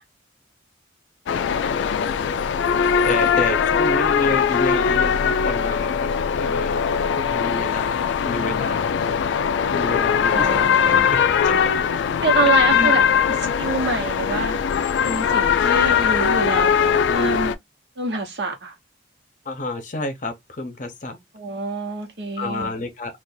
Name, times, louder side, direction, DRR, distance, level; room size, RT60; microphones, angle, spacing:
sound 1, 1.3-17.5, left 7 dB, 80° left, 0.3 m, -20 dB
voice 1, 3.0-6.1 6.4-6.9 7.1-9.0 9.7-11.7 12.7-13.0 19.5-21.2 22.4-23.2, left 2 dB, 45° left, 0.7 m, -30 dB
voice 2, 10.3-11.1 11.5-11.7 12.2-14.6 15.0-17.5 18.0-18.8 21.3-22.7, right 3 dB, 65° right, 1.0 m, -26 dB
2.6 x 2.4 x 3.8 m
head